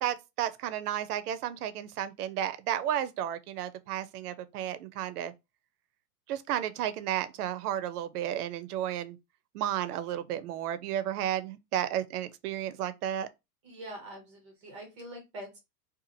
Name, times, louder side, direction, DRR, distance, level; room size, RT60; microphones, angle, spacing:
voice 1, 0.0-5.3 6.3-9.2 9.5-13.3, right 11 dB, 65° right, 0.6 m, -33 dB
voice 2, 13.6-15.6, right 1 dB, 20° right, 0.5 m, -44 dB
2.7 x 2.4 x 2.6 m
supercardioid pair, 160°, 50 cm